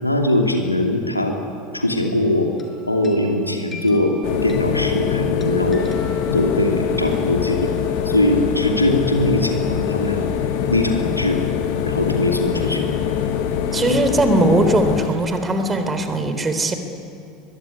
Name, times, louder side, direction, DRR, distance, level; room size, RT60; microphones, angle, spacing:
voice 1, 0.0-1.4 1.7-2.5 2.9-4.1 4.4-5.9 6.3-7.7 8.0-10.3 10.7-11.4 11.8-12.9, left 1 dB, 90° left, 2 dB, 2.7 m, -21 dB
sound 1, 2.0-2.3 2.6-7.0, left 3 dB, 20° left, 5.6 m, -43 dB
sound 2, 4.2-15.1, left 9 dB, 55° left, 1.6 m, -23 dB
sound 3, 5.5-16.1, right 2 dB, 55° right, 7.7 m, -42 dB
voice 2, 13.7-16.7, right 2 dB, 20° right, 8 dB, 3.6 m, -19 dB
23.0 x 22.5 x 9.7 m, 2.6 s
figure-of-eight pair, 75°, 0 cm